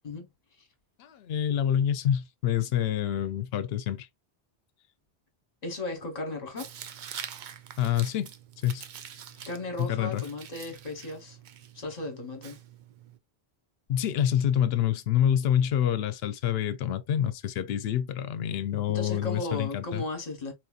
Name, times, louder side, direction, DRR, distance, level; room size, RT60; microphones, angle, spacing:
voice 1, 1.0-4.1 7.8-8.3 8.6-8.8 9.8-10.2 13.9-20.0, left 10 dB, 70° left, 0.8 m, -27 dB
voice 2, 5.6-6.7 9.5-11.4 11.7-12.6 18.9-20.5, left 2 dB, 40° left, 1.1 m, -35 dB
Tearing, 6.6-13.2, right 8 dB, 60° right, 0.6 m, -45 dB
4.2 x 2.7 x 2.3 m
omnidirectional pair, 1.1 m